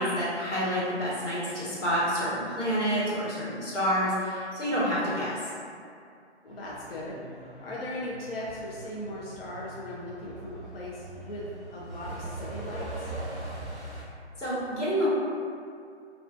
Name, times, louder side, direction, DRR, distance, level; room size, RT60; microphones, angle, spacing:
voice 1, 0.0-5.4 14.4-15.1, equal, 90° left, -9 dB, 1.2 m, -28 dB
voice 2, 6.4-13.1, left 1 dB, 55° left, -6 dB, 0.5 m, -38 dB
Truck, 6.5-14.0, right 2 dB, 10° right, 0.6 m, -41 dB
2.4 x 2.4 x 2.4 m, 2.3 s
figure-of-eight pair, 150°, 35 cm